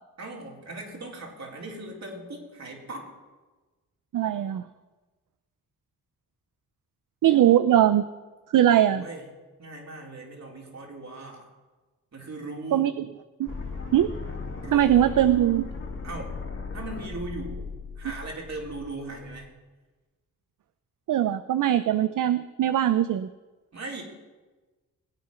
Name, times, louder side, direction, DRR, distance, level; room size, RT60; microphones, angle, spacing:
voice 1, 0.2-3.1 8.8-9.3 9.6-11.5 12.1-12.9 14.6-15.2 16.0-16.4 16.7-17.7 18.0-19.5 23.7-24.0, right 2 dB, 55° right, -1 dB, 4.4 m, -38 dB
voice 2, 4.1-4.6 7.2-8.1 8.5-9.0 12.7-13.1 13.4-13.5 13.9-14.1 14.7-15.7 21.1-23.3, right 11 dB, 70° right, 13 dB, 0.6 m, -21 dB
sound 1, 13.5-19.5, left 4 dB, 45° left, 2.9 m, -37 dB
20.5 x 8.8 x 5.8 m, 1.2 s
cardioid pair, 60°, 33 cm